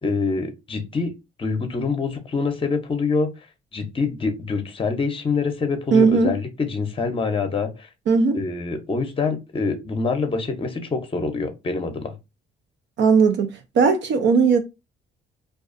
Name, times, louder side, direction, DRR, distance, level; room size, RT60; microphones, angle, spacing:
voice 1, 0.0-1.1 1.4-3.3 3.7-7.9 8.3-12.1, left 4 dB, 25° left, 0.7 m, -25 dB
voice 2, 5.9-6.3 8.1-8.4 13.0-14.6, right 5 dB, 65° right, 0.5 m, -17 dB
2.4 x 2.3 x 2.5 m
cardioid pair, 90°, 20 cm